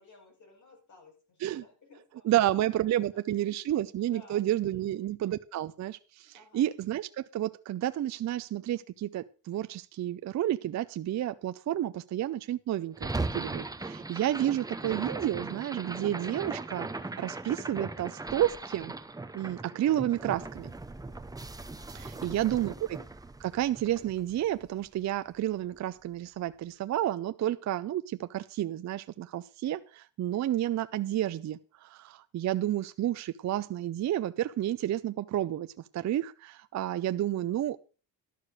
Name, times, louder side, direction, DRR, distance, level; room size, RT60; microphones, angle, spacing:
voice 1, 0.0-2.6 3.3-5.2 6.3-6.6 21.9-22.7, left 3 dB, 40° left, 5.8 m, -57 dB
voice 2, 2.2-16.9 17.2-18.9 19.3-20.7 21.9-23.0 23.4-35.7 35.9-37.8, right 12 dB, 40° right, 0.5 m, -31 dB
sound 1, 12.9-25.2, right 3 dB, 10° right, 0.7 m, -39 dB
12.0 x 6.6 x 6.4 m
cardioid pair, 135°, 44 cm